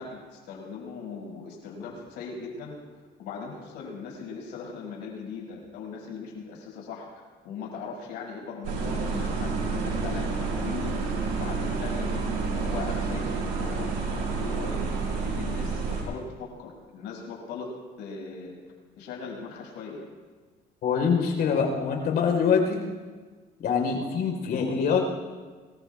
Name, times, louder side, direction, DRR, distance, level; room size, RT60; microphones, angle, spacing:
voice 1, 0.0-2.8 3.2-11.0 11.3-14.8 15.2-17.7 18.0-18.5 19.0-20.0, left 5 dB, 85° left, -3 dB, 6.8 m, -39 dB
sound 1, 8.6-16.0, right 4 dB, 85° right, 6.2 m, -29 dB
voice 2, 20.8-22.8 23.6-25.0, left 6 dB, 70° left, 2 dB, 4.3 m, -24 dB
26.0 x 21.0 x 2.5 m, 1.4 s
cardioid pair, 110°, 17 cm